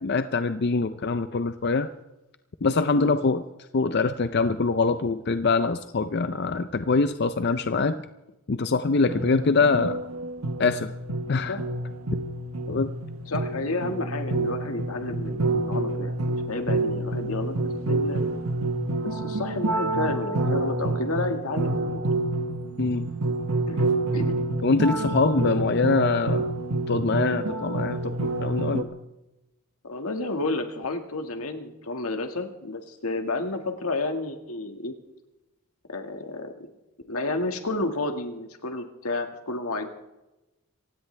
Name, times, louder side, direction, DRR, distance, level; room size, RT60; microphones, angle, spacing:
voice 1, 0.0-1.9 2.6-3.4 3.7-8.0 8.5-10.0 10.6-10.9 11.3-11.6 12.7-12.9 22.8-23.1 24.6-26.5 26.9-28.9, left 4 dB, 50° left, 11 dB, 0.5 m, -24 dB
sound 1, 9.1-28.8, right 2 dB, 85° right, 1.2 m, -28 dB
voice 2, 13.3-18.2 19.0-22.0 23.7-23.9 24.1-24.4 29.8-34.9 35.9-36.7 37.1-39.9, left 2 dB, 85° left, 5 dB, 1.8 m, -31 dB
26.5 x 16.5 x 3.3 m, 0.99 s
head